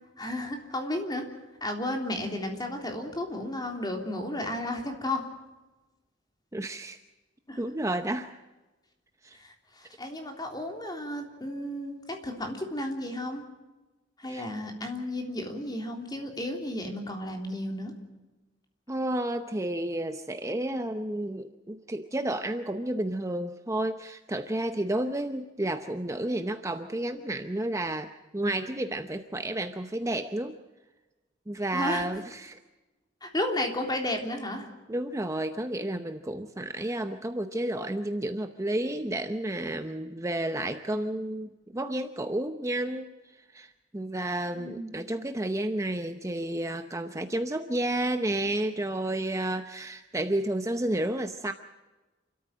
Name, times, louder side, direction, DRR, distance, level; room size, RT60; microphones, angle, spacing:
voice 1, 0.2-1.3 1.6-5.2 7.5-7.6 9.4-13.4 14.2-17.9 31.7-32.0 33.2-34.7 44.5-44.9 45.2-45.3, left 1 dB, 20° left, 3 dB, 3.4 m, -33 dB
voice 2, 6.5-7.0 7.6-8.3 9.2-9.4 14.3-14.5 18.9-30.6 31.5-32.6 34.9-51.5, right 1 dB, 15° right, 7 dB, 0.8 m, -31 dB
28.5 x 13.5 x 7.5 m, 1.1 s
head